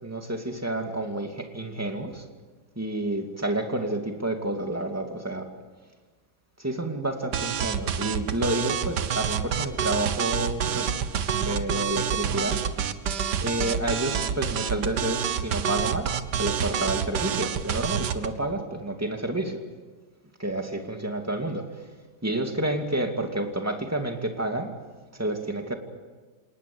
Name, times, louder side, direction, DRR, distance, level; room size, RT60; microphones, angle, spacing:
voice 1, 0.0-2.2 2.8-5.5 6.6-10.9 11.3-12.9 13.4-19.6 20.4-21.9 22.2-24.7 25.1-25.8, right 1 dB, 10° right, 4 dB, 2.4 m, -30 dB
sound 1, 7.3-18.3, right 8 dB, 80° right, 1.8 m, -28 dB
28.0 x 19.0 x 8.6 m, 1.3 s
omnidirectional pair, 1.8 m